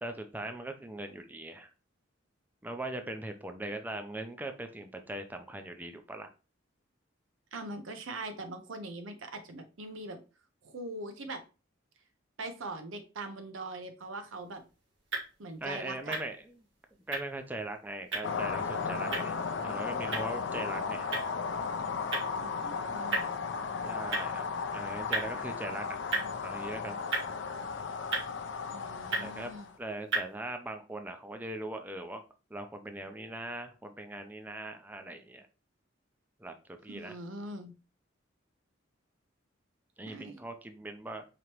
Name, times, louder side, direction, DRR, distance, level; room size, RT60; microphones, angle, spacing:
voice 1, 0.0-1.7 2.6-6.3 15.6-16.6 17.1-21.1 23.8-24.5 24.7-25.9 26.4-27.0 29.2-32.2 32.5-35.5 36.4-36.5 36.8-37.2 40.0-41.3, right 1 dB, 10° right, 6 dB, 0.4 m, -40 dB
voice 2, 7.5-10.2 10.6-11.4 12.4-14.6 15.4-16.2 22.4-23.4 28.7-29.7 36.9-37.7 40.1-40.4, right 2 dB, 85° right, 7 dB, 0.7 m, -42 dB
sound 1, 14.3-30.4, right 3 dB, 65° right, 1.8 m, -40 dB
sound 2, 18.2-29.8, left 5 dB, 65° left, 0.5 m, -35 dB
5.0 x 2.9 x 3.0 m, 0.33 s
head